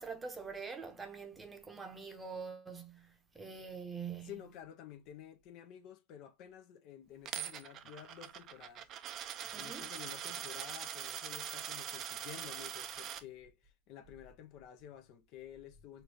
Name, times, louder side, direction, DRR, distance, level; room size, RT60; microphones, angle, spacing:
voice 1, 0.0-4.4 9.5-9.9, right 5 dB, 15° right, 0.9 m, -45 dB
voice 2, 4.2-8.9 9.5-16.0, left 10 dB, 45° left, 0.8 m, -51 dB
Coin (dropping), 7.3-13.2, right 10 dB, 35° right, 0.5 m, -43 dB
4.3 x 2.6 x 3.4 m
supercardioid pair, 130°, 0 cm